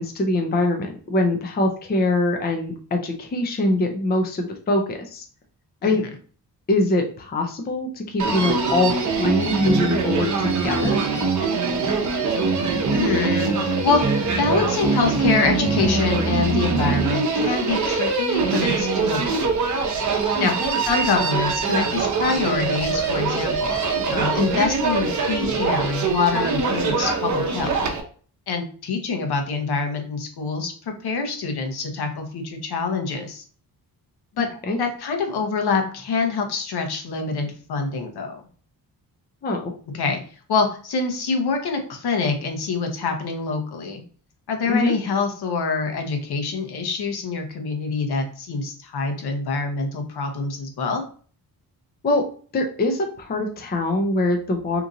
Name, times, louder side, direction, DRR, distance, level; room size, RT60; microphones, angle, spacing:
voice 1, 0.0-5.2 5.8-6.0 6.7-11.0 20.3-20.5 34.7-34.8 39.4-39.7 44.7-44.9 52.0-52.2 52.5-54.8, left 2 dB, 25° left, 3 dB, 0.5 m, -23 dB
Human voice, 8.2-28.0, right 4 dB, 45° right, 0.8 m, -23 dB
voice 2, 12.9-19.4 20.4-20.5 20.9-23.8 24.1-27.8 28.5-30.7 31.0-33.4 34.4-34.5 34.8-38.4 39.9-40.2 40.5-44.0 44.5-51.0, left 4 dB, 65° left, 4 dB, 0.9 m, -25 dB
2.9 x 2.5 x 3.8 m, 0.42 s
wide cardioid pair, 130°, 41 cm